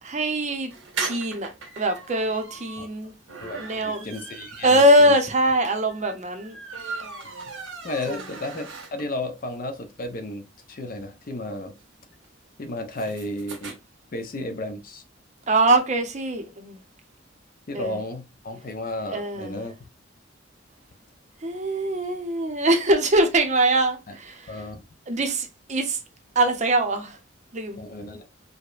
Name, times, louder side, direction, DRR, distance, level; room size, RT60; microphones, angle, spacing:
voice 1, 0.0-0.7 1.0-1.5 1.8-3.1 3.6-4.1 4.6-6.6 6.8-6.9 8.1-8.2 15.5-16.8 17.7-18.0 19.1-19.6 21.4-24.5 25.1-26.0 26.4-27.2 27.5-27.8, right 1 dB, 40° right, 0.6 m, -22 dB
sound 1, 0.7-9.3 9.7-9.8 10.0-10.1 10.3-13.7, right 4 dB, 85° right, 0.9 m, -38 dB
voice 2, 3.4-5.1 7.5-7.6 7.8-11.7 12.6-13.8 14.1-15.0 17.7-19.9 24.1-24.2 24.5-24.8 27.7-28.3, left 1 dB, 45° left, 0.5 m, -33 dB
4.8 x 2.1 x 2.4 m
head